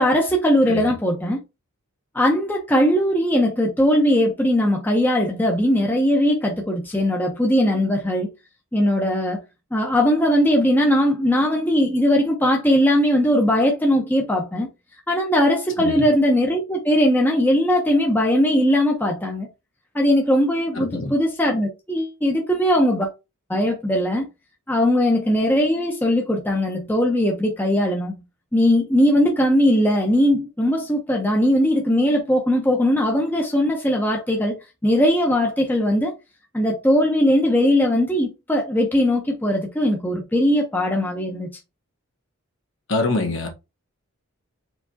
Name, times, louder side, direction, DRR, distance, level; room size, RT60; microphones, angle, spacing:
voice 1, 0.0-1.4 2.1-8.3 8.7-9.4 9.7-14.7 15.1-19.5 19.9-23.1 23.5-24.3 24.7-28.2 28.5-36.1 36.5-41.5, equal, 10° left, 0.8 m, -19 dB
voice 2, 20.7-21.2 42.9-43.5, left 2 dB, 55° left, 1.2 m, -25 dB
4.6 x 3.4 x 2.8 m
head